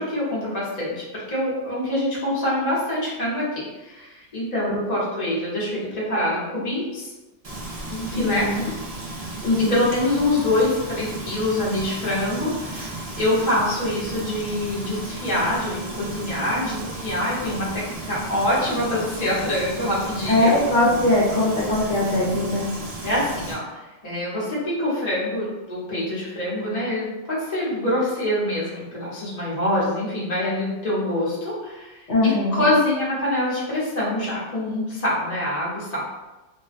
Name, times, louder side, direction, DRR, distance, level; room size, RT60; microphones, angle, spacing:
voice 1, 0.0-7.1 7.9-8.5 9.6-17.8 18.1-20.6 21.8-21.9 23.0-36.0, left 1 dB, 35° left, -8 dB, 0.9 m, -25 dB
Frying (food), 7.4-23.5, right 2 dB, 65° right, 0.3 m, -34 dB
voice 2, 8.1-8.6 9.4-9.8 20.3-22.7 32.1-32.7, left 2 dB, 70° left, -6 dB, 0.9 m, -21 dB
2.4 x 2.1 x 2.4 m, 1.1 s
omnidirectional pair, 1.3 m